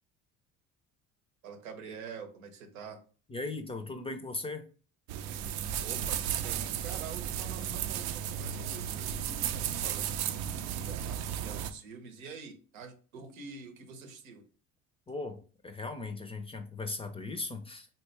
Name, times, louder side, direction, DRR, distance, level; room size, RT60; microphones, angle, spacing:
voice 1, 1.4-3.0 5.8-14.4, right 5 dB, 85° right, 5 dB, 0.9 m, -46 dB
voice 2, 3.3-4.7 15.1-15.4 15.6-18.0, left 3 dB, 15° left, 7 dB, 0.4 m, -38 dB
sound 1, 5.1-11.7, right 10 dB, 65° right, 0.5 m, -34 dB
4.1 x 2.2 x 3.3 m, 0.39 s
hypercardioid pair, 65°, 40 cm